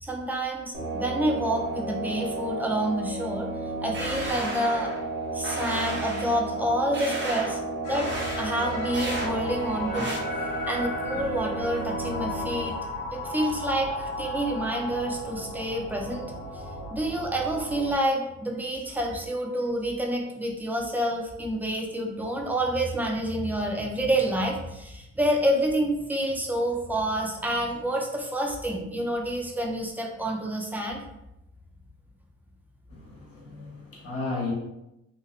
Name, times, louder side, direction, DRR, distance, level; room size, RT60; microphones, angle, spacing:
voice 1, 0.0-3.5 3.8-4.9 5.3-7.6 7.9-8.1 8.4-10.2 10.7-12.7 13.1-16.6 16.9-31.0, right 1 dB, 5° right, 0 dB, 0.6 m, -28 dB
sound 1, 0.7-12.6, right 2 dB, 75° right, 1.2 m, -33 dB
sound 2, 3.9-5.0 5.4-6.4 6.9-7.6 7.9-8.4 8.9-9.3 9.9-10.2, right 1 dB, 40° right, 0.9 m, -34 dB
sound 3, 7.8-17.9, left 1 dB, 85° left, 0.8 m, -35 dB
voice 2, 32.9-34.5, left 3 dB, 50° left, -3 dB, 1.2 m, -34 dB
2.8 x 2.8 x 2.4 m, 0.87 s
cardioid pair, 90°, 30 cm